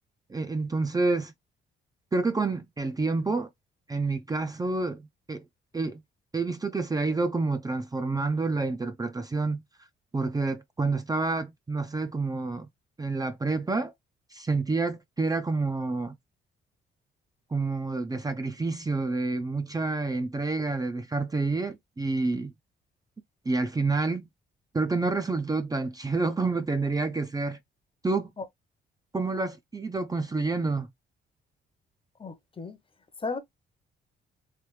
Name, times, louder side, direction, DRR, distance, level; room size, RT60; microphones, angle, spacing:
voice 1, 0.3-1.3 2.1-3.5 3.9-5.4 5.7-6.0 6.3-9.6 10.1-12.7 13.0-13.9 14.3-16.2 17.5-22.5 23.5-24.2 24.7-27.6 28.0-28.3 29.1-30.9, right 3 dB, 20° right, 0.5 m, -28 dB
voice 2, 32.2-32.8 33.2-33.4, left 4 dB, 25° left, 0.8 m, -34 dB
3.3 x 3.1 x 3.1 m
cardioid pair, 90°, 20 cm